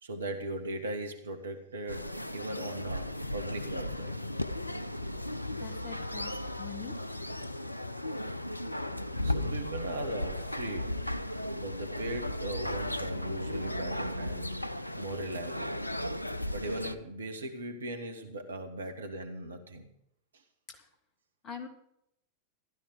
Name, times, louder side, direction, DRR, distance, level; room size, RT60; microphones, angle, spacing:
voice 1, 0.0-4.2 9.2-11.0 11.5-14.5 14.9-15.8 16.5-19.9, right 1 dB, 70° right, 7 dB, 1.9 m, -39 dB
sound 1, 1.9-17.0, left 1 dB, 85° left, 0.6 m, -35 dB
voice 2, 5.5-7.0 20.7-20.9 21.4-21.7, left 7 dB, 30° left, 5 dB, 2.6 m, -44 dB
15.5 x 12.5 x 5.0 m, 0.76 s
figure-of-eight pair, 90°, 0 cm